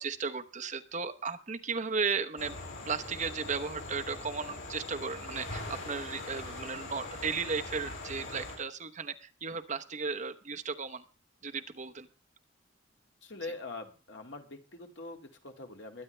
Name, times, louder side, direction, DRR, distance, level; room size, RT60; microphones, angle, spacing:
voice 1, 0.0-2.5 2.9-11.0 11.4-12.1, right 5 dB, 40° right, 7 dB, 1.0 m, -35 dB
sound 1, 2.4-8.6, left 2 dB, 85° left, 6.5 m, -42 dB
voice 2, 13.2-16.0, left 2 dB, 65° left, 4 dB, 2.3 m, -43 dB
22.0 x 9.7 x 3.3 m, 0.34 s
head